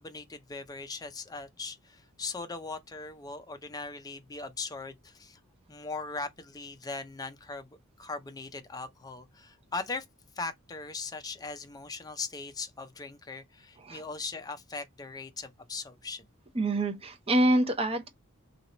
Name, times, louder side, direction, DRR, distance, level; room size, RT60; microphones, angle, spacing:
voice 1, 0.0-5.4 5.7-10.1 10.4-16.3, left 3 dB, 15° left, 0.5 m, -39 dB
voice 2, 16.5-18.1, right 1 dB, 25° right, 0.7 m, -26 dB
2.9 x 2.9 x 2.8 m
head